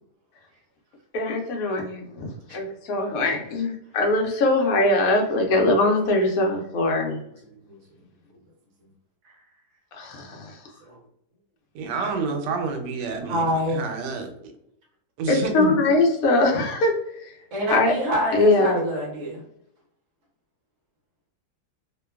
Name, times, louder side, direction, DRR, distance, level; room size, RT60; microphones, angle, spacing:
voice 1, 1.1-7.2 9.9-10.6 15.3-16.9 17.2-17.3 17.7-17.9 18.3-18.8, left 2 dB, 65° left, 2 dB, 1.0 m, -22 dB
voice 2, 11.7-14.3 15.2-15.8, right 4 dB, 90° right, 5 dB, 1.2 m, -29 dB
voice 3, 13.3-13.8 17.5-19.4, equal, 55° right, -2 dB, 1.0 m, -26 dB
2.9 x 2.2 x 2.2 m, 0.76 s
omnidirectional pair, 1.8 m